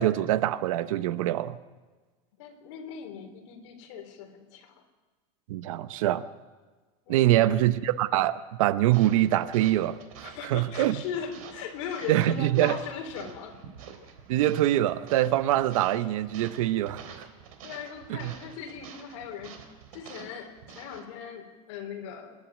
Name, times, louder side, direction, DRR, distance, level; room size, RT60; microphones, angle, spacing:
voice 1, 0.0-1.6 5.5-6.2 7.1-11.0 12.1-12.8 14.3-17.0 18.1-18.3, right 14 dB, 70° right, 0.8 m, -24 dB
voice 2, 2.4-4.7 7.1-7.6 10.2-13.6 17.6-19.6 19.9-22.4, left 7 dB, 60° left, 3.6 m, -39 dB
sound 1, 8.9-21.1, right 7 dB, 90° right, 3.4 m, -48 dB
26.5 x 11.0 x 9.2 m
supercardioid pair, 180°, 17 cm